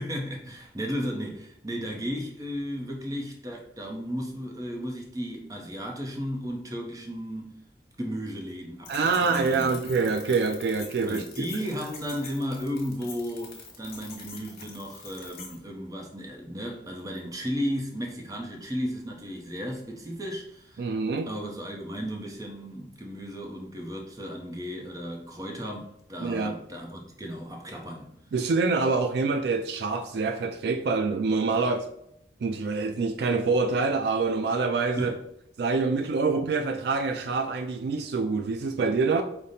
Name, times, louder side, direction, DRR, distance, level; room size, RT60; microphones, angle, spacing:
voice 1, 0.0-7.5 8.0-10.0 11.0-20.9 21.3-28.1 35.0-35.2, equal, 20° right, 0.6 m, -34 dB
sound 1, 8.8-15.6, left 5 dB, 55° left, 1.1 m, -45 dB
voice 2, 8.9-11.5 20.8-21.3 26.2-26.5 28.3-31.9 32.4-35.1 35.6-39.2, right 4 dB, 65° right, 0.3 m, -26 dB
5.0 x 2.0 x 4.1 m
head